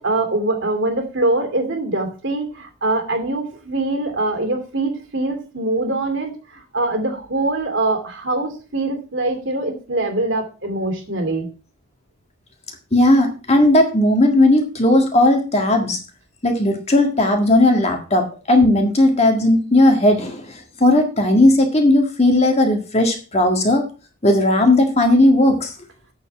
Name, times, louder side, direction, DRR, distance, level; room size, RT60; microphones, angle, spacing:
voice 1, 0.0-11.5, right 2 dB, 55° right, 5 dB, 2.6 m, -23 dB
voice 2, 12.9-16.0 16.4-23.8 24.2-25.7, left 1 dB, 30° left, 3 dB, 1.8 m, -16 dB
8.2 x 7.3 x 5.7 m, 0.34 s
head